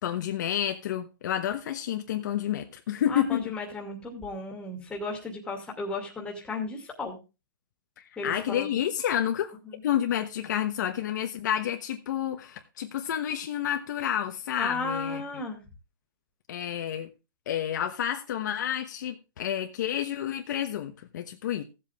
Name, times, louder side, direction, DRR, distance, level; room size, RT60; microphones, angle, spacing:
voice 1, 0.0-3.4 8.0-9.6 9.8-15.2 16.5-17.1 17.5-21.6, left 10 dB, 50° left, 6 dB, 1.1 m, -30 dB
voice 2, 3.1-7.2 8.2-8.7 9.6-9.8 14.6-15.6, left 3 dB, 10° left, 1 dB, 2.4 m, -34 dB
16.0 x 7.8 x 3.5 m, 0.29 s
hypercardioid pair, 165°, 12 cm